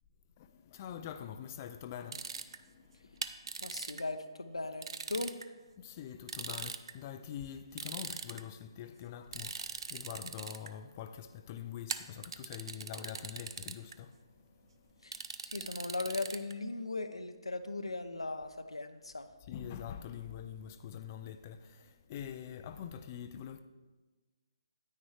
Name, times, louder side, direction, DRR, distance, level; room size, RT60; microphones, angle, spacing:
voice 1, 0.4-3.3 3.6-3.8 5.8-15.2 19.5-23.6, left 9 dB, 30° left, 0.4 m, -45 dB
sound 1, 2.1-2.6 3.2-4.0 4.8-5.4 6.3-6.9 7.8-8.4 9.3-10.7 11.9-13.9 15.1-16.5, right 5 dB, 60° right, 0.5 m, -41 dB
voice 2, 3.6-5.4 15.0-19.3, left 2 dB, 90° left, 0.8 m, -38 dB
9.8 x 9.1 x 3.2 m
figure-of-eight pair, 145°, 3 cm